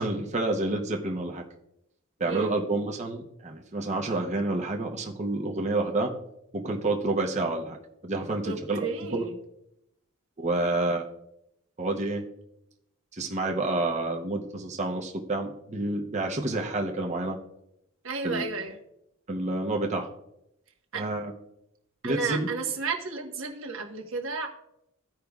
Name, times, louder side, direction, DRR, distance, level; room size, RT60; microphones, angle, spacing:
voice 1, 0.0-1.4 2.2-6.1 6.5-7.8 8.0-8.9 9.1-9.2 10.4-11.1 11.8-12.2 13.1-17.4 18.2-18.5 19.3-20.1 20.9-21.3 22.0-22.5, right 2 dB, 30° right, 1 dB, 0.8 m, -29 dB
voice 2, 8.4-9.3 18.0-18.7 20.9-21.0 22.0-24.5, right 4 dB, 65° right, 2 dB, 1.2 m, -32 dB
15.0 x 5.1 x 2.3 m, 0.80 s
head